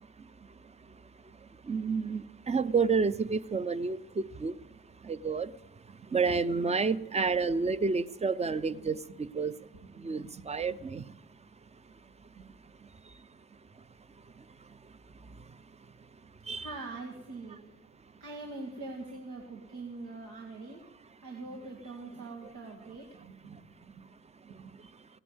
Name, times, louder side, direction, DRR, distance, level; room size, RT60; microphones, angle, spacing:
voice 1, 1.7-4.5 5.1-5.5 6.1-9.5 10.0-11.0 16.5-16.7, right 4 dB, 20° right, 16 dB, 0.6 m, -29 dB
voice 2, 10.0-10.4 11.0-11.1 12.4-12.5 16.5-17.6 18.2-20.8 21.2-23.9 24.5-24.7, right 3 dB, 90° right, -1 dB, 2.1 m, -44 dB
16.5 x 10.0 x 7.9 m, 0.91 s
cardioid pair, 90°, 30 cm